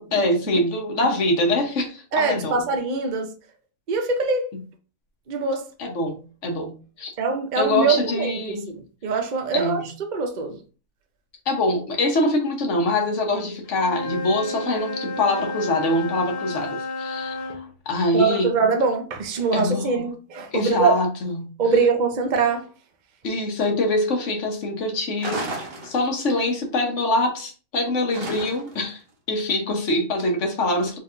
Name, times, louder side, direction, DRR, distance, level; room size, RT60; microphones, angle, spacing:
voice 1, 0.0-2.6 4.5-4.6 5.8-7.1 7.5-8.7 9.5-9.9 11.5-18.5 19.5-20.1 20.5-21.5 23.2-25.5 25.8-29.0 29.3-31.0, left 2 dB, 50° left, 1.2 m, -24 dB
voice 2, 2.1-3.3 3.9-4.5 5.3-5.6 7.2-8.3 8.7-9.8 10.1-10.6 18.1-21.0 21.6-22.7, right 4 dB, 70° right, 0.4 m, -23 dB
Wind instrument woodwind instrument, 13.6-17.6, left 2 dB, 80° left, 1.8 m, -31 dB
sound 1, 25.2-26.4 28.1-28.9, right 1 dB, 45° right, 1.0 m, -33 dB
4.6 x 3.5 x 2.5 m
omnidirectional pair, 1.7 m